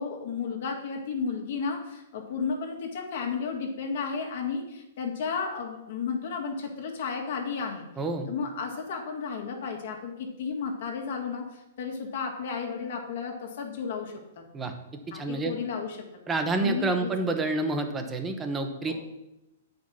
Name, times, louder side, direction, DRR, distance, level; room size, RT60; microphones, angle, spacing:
voice 1, 0.0-7.9 8.3-14.4 15.1-16.0 16.3-17.1 18.9-19.0, left 5 dB, 60° left, 1 dB, 1.8 m, -33 dB
voice 2, 8.0-8.3 14.5-14.7 15.1-15.5 16.3-18.9, right 3 dB, 15° right, 6 dB, 0.9 m, -28 dB
8.9 x 5.3 x 5.5 m, 0.91 s
hypercardioid pair, 150°, 0 cm